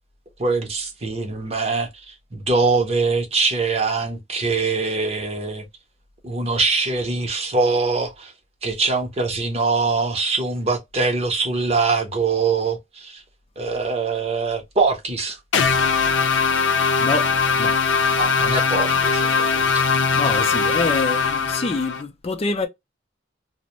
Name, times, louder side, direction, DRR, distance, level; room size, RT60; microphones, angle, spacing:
voice 1, 0.4-1.9 2.3-5.6 6.2-8.3 8.6-13.2 13.6-15.4 18.2-19.9, right 4 dB, 35° right, 0.7 m, -23 dB
sound 1, 15.5-22.0, left 5 dB, 85° left, 0.5 m, -20 dB
voice 2, 17.0-17.8 20.1-22.7, left 3 dB, 35° left, 0.4 m, -26 dB
2.5 x 2.0 x 2.9 m
head